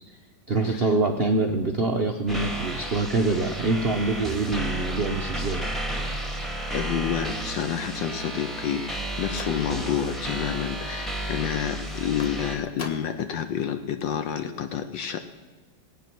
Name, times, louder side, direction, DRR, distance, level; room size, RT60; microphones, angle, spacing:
voice 1, 0.5-5.7, right 3 dB, 65° right, 3 dB, 0.6 m, -25 dB
sound 1, 2.3-12.6, right 1 dB, ahead, 1.0 m, -32 dB
voice 2, 6.7-15.2, left 9 dB, 75° left, 8 dB, 1.4 m, -29 dB
sound 2, 9.0-10.0 10.4-10.9 12.2-13.3 13.6-13.7 14.0-14.1 14.4-14.5, left 2 dB, 35° left, 0.5 m, -43 dB
18.0 x 9.2 x 6.1 m, 1.3 s
omnidirectional pair, 2.1 m